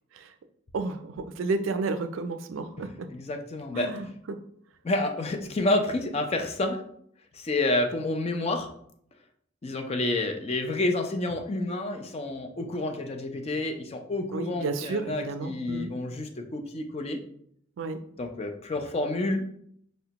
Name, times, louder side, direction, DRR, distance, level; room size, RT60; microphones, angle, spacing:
voice 1, 0.7-2.9 3.7-4.1 14.3-15.9 17.8-18.0, right 3 dB, 85° right, 8 dB, 0.4 m, -31 dB
voice 2, 2.8-3.9 4.8-6.8 7.3-8.7 9.6-17.2 18.2-19.4, left 2 dB, 30° left, 4 dB, 0.4 m, -29 dB
5.0 x 2.1 x 2.8 m, 0.66 s
head